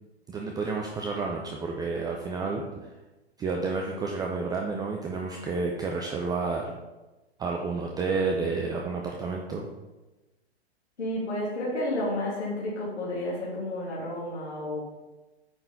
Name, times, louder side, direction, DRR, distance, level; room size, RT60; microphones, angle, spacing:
voice 1, 0.3-2.9 3.4-6.6 7.4-9.7, right 4 dB, 10° right, 0 dB, 0.5 m, -30 dB
voice 2, 11.0-14.8, left 1 dB, 90° left, -7 dB, 2.4 m, -31 dB
8.8 x 4.0 x 4.0 m, 1.1 s
hypercardioid pair, 120°, 33 cm